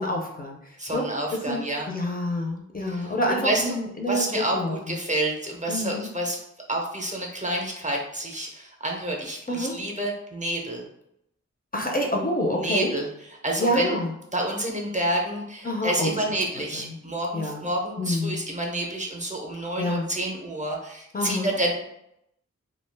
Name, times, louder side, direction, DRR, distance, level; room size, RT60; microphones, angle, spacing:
voice 1, 0.0-1.1 1.5-5.0 5.7-6.1 9.5-9.7 11.7-12.9 13.6-14.1 15.6-16.1 16.6-17.0 17.3-17.6 18.0-18.4 19.8-20.1 21.1-21.5, left 1 dB, 30° left, 0 dB, 0.5 m, -28 dB
voice 2, 0.8-1.9 2.9-3.7 4.1-6.4 6.7-10.8 12.5-13.1 13.4-14.0 14.3-21.7, right 1 dB, 25° right, -1 dB, 0.5 m, -29 dB
2.3 x 2.2 x 3.2 m, 0.79 s
wide cardioid pair, 75°, 30 cm